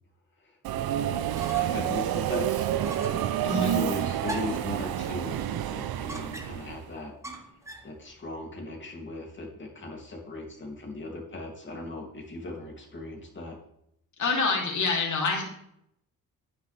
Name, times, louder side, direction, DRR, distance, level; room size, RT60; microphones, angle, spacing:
Subway metro underground, 0.6-6.9, right 11 dB, 75° right, 0.7 m, -29 dB
voice 1, 0.9-3.2 3.5-7.1 7.8-13.6, left 2 dB, 30° left, 0 dB, 2.7 m, -38 dB
sound 1, 1.4-1.9 2.2-2.3 2.8-3.3 4.2-4.7 6.1-6.7 7.2-7.9, right 1 dB, 10° right, 1.4 m, -40 dB
voice 2, 3.4-3.8 14.2-15.4, left 4 dB, 55° left, 0 dB, 2.9 m, -26 dB
9.8 x 9.7 x 3.4 m, 0.75 s
cardioid pair, 115°, 36 cm